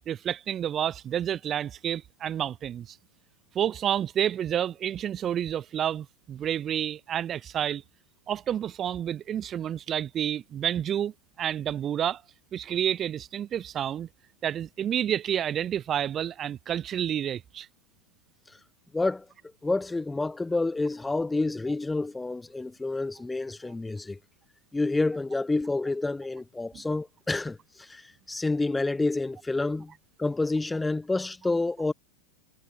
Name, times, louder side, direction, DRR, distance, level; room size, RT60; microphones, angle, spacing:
voice 1, 0.1-3.0 3.5-7.8 8.3-12.2 12.5-14.1 14.4-17.7 26.7-26.8, right 10 dB, 25° right, 0.9 m, -29 dB
voice 2, 18.9-19.3 19.6-24.2 24.7-29.9 30.2-31.9, left 2 dB, 10° left, 0.9 m, -28 dB
figure-of-eight pair, 90°, 0 cm